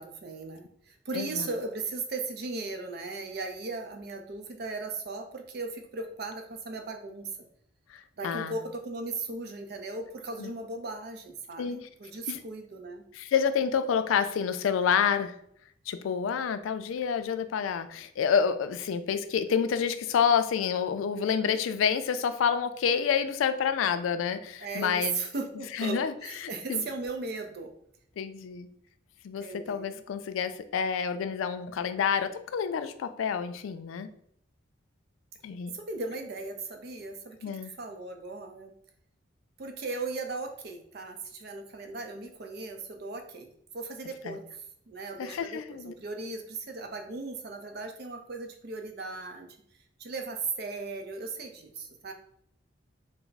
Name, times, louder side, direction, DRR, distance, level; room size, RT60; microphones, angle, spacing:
voice 1, 0.0-7.3 8.2-13.0 24.6-27.7 29.4-30.1 35.7-37.4 37.8-38.7 39.6-49.5 50.0-52.1, right 3 dB, 55° right, 5 dB, 0.5 m, -37 dB
voice 2, 1.1-1.5 7.9-8.6 10.4-10.5 11.6-11.8 12.3-12.4 13.1-15.4 15.9-25.1 25.7-26.1 26.4-26.8 28.2-28.7 29.2-34.1 35.4-35.7 37.4-37.7 44.3-44.4 45.2-45.9, left 7 dB, 90° left, 11 dB, 0.3 m, -28 dB
3.3 x 2.0 x 3.9 m, 0.68 s
head